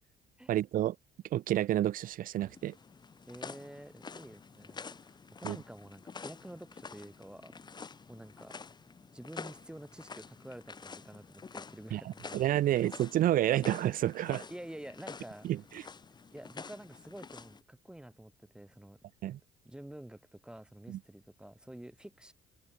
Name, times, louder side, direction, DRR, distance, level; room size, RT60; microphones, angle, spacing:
voice 1, 0.5-1.0 1.3-2.7 5.4-5.6 11.9-12.0 12.3-14.5 15.4-15.6 19.2-19.4 20.9-21.0, right 13 dB, 55° right, 0.6 m, -29 dB
sound 1, 2.5-17.6, left 5 dB, 25° left, 1.2 m, -48 dB
voice 2, 3.3-7.6 8.1-8.6 9.1-12.4 14.5-15.5 16.3-19.0 19.6-22.3, right 1 dB, 5° right, 1.1 m, -49 dB
cardioid pair, 110°, 17 cm